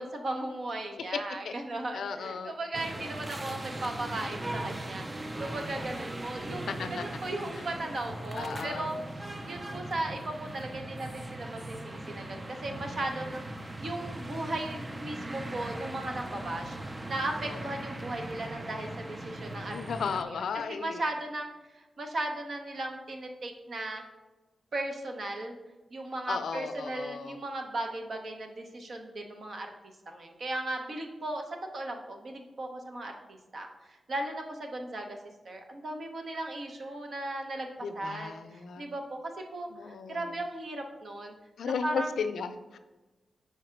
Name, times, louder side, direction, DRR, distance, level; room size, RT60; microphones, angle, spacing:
voice 1, 0.0-13.4 13.8-16.7 17.1-19.8 20.3-24.0 24.7-25.6 25.9-29.7 30.1-31.4 31.7-35.2 35.4-37.7 38.0-41.4 41.8-42.1, right 1 dB, 50° right, 3 dB, 0.8 m, -37 dB
voice 2, 1.9-2.5 6.7-7.0 8.3-8.9 17.4-17.6 19.6-21.0 26.3-27.4 37.8-38.9 39.7-40.3 41.6-42.8, left 6 dB, 85° left, 9 dB, 0.4 m, -35 dB
sound 1, 2.7-20.2, right 1 dB, 20° right, 0.4 m, -39 dB
4.8 x 4.6 x 4.5 m, 1.1 s
wide cardioid pair, 135°, 0 cm